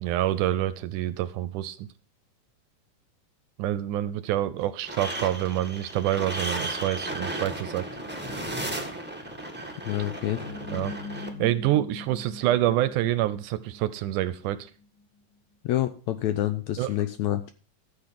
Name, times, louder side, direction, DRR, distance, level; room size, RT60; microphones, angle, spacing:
voice 1, 0.0-1.8 3.6-7.8 10.7-11.0 11.4-14.7 16.8-16.9, right 13 dB, 75° right, 15 dB, 2.0 m, -27 dB
sound 1, 4.8-11.3, right 1 dB, 10° right, 0.4 m, -35 dB
voice 2, 9.8-10.4 15.6-17.5, left 13 dB, 75° left, 10 dB, 1.8 m, -27 dB
sound 2, 10.4-15.0, left 4 dB, 35° left, 1.9 m, -41 dB
13.5 x 6.8 x 5.8 m, 0.37 s
omnidirectional pair, 3.9 m